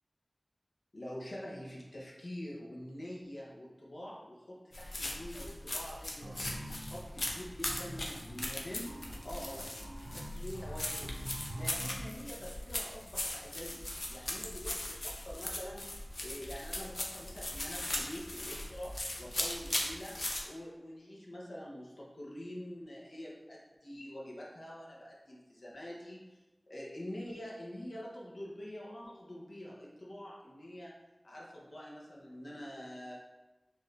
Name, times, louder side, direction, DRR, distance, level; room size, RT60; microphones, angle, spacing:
voice 1, 0.9-6.3 6.8-9.7 10.1-11.1 11.5-15.8 16.2-20.1 20.4-26.4 26.7-30.9 31.2-33.1, equal, 85° left, -4 dB, 1.0 m, -46 dB
sound 1, 4.7-20.4, left 1 dB, 70° left, 0.6 m, -39 dB
sound 2, 6.2-12.0, right 1 dB, 75° right, 0.7 m, -45 dB
4.6 x 2.7 x 3.3 m, 1.1 s
wide cardioid pair, 50°, 0 cm